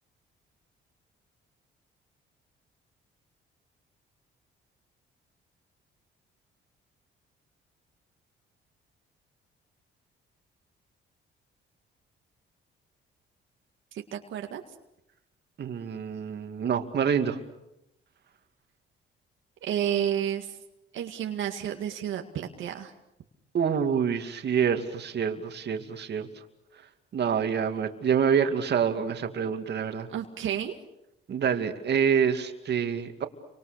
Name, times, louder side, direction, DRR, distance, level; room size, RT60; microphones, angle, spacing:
voice 1, 13.9-14.6 19.6-20.6 20.9-22.9 30.1-30.8, right 10 dB, 80° right, 3 dB, 2.1 m, -31 dB
voice 2, 15.6-17.4 23.5-26.3 27.1-30.1 31.3-33.3, right 7 dB, 60° right, 6 dB, 2.5 m, -27 dB
30.0 x 25.0 x 6.7 m, 0.85 s
cardioid pair, 90°, 20 cm